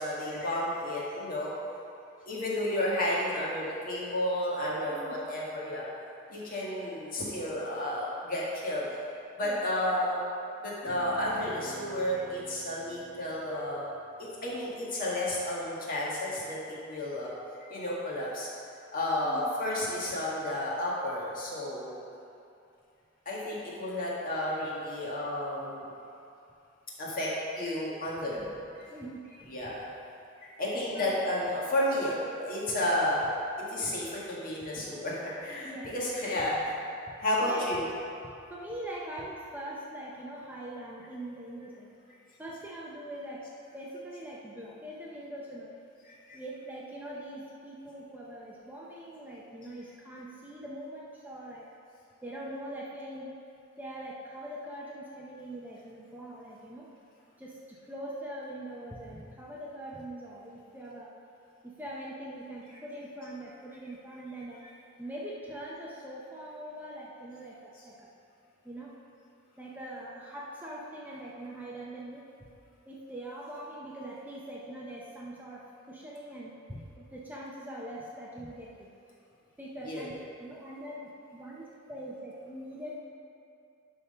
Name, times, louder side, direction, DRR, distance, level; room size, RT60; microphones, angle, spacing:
voice 1, 0.0-1.5 2.3-5.8 6.3-8.9 9.3-10.2 10.6-13.8 14.2-17.3 17.6-18.5 18.9-21.9 23.3-25.9 27.0-28.4 28.8-28.9 29.5-29.8 30.4-33.3 33.7-36.6 37.2-37.8 46.3-46.4 79.9-80.1, left 1 dB, 40° left, -6 dB, 1.8 m, -32 dB
sound 1, 10.8-15.6, equal, 30° right, 1.1 m, -51 dB
voice 2, 28.9-29.5 30.9-31.2 35.6-35.9 37.1-37.2 37.4-37.7 38.2-41.9 42.4-45.7 46.3-51.7 52.2-53.4 53.8-56.9 57.4-61.1 61.6-64.6 65.0-68.1 68.6-68.9 69.6-72.2 72.9-78.9 79.6-80.1 80.4-83.0, right 1 dB, 10° right, -5 dB, 0.7 m, -42 dB
11.0 x 3.8 x 5.5 m, 2.6 s
head